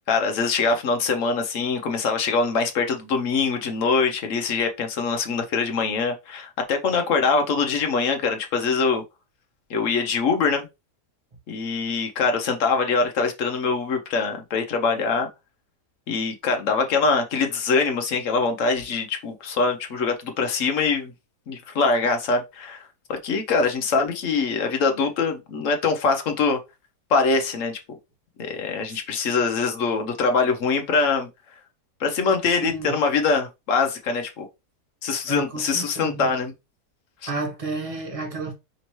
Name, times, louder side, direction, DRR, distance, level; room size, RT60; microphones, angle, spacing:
voice 1, 0.1-9.0 9.7-10.7 11.5-15.3 16.1-21.1 21.5-22.8 23.1-26.6 27.1-27.8 28.4-31.3 32.0-34.5 35.0-36.5 37.2-37.3, left 4 dB, 60° left, 1.1 m, -23 dB
voice 2, 32.4-32.9 35.3-36.3 37.3-38.5, right 3 dB, 25° right, 0.9 m, -31 dB
5.3 x 2.7 x 3.1 m
omnidirectional pair, 1.7 m